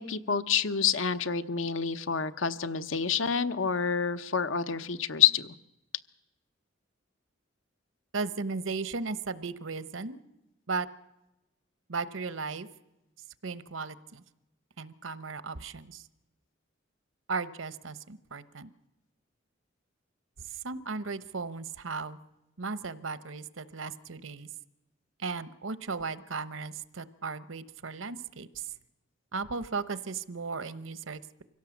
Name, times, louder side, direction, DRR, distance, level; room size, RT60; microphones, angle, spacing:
voice 1, 0.0-5.5, left 7 dB, 75° left, 12 dB, 0.9 m, -28 dB
voice 2, 8.1-10.2 10.7-10.9 11.9-12.7 13.4-14.2 14.8-16.0 17.3-18.7 20.4-22.2 22.6-24.5 25.2-28.7 29.3-31.4, right 4 dB, 80° right, 14 dB, 1.0 m, -36 dB
24.5 x 17.0 x 7.2 m, 0.93 s
head